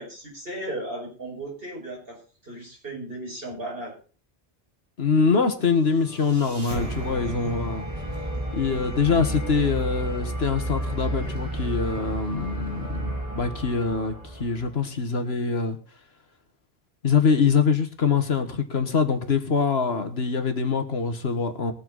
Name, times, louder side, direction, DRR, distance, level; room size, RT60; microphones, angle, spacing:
voice 1, 0.0-3.9, right 1 dB, 65° right, 5.8 m, -36 dB
voice 2, 5.0-7.9 8.5-15.8 17.0-21.7, left 5 dB, 75° left, 1.8 m, -24 dB
sound 1, 5.7-14.8, right 1 dB, 30° right, 2.4 m, -32 dB
20.5 x 7.6 x 4.0 m
omnidirectional pair, 1.1 m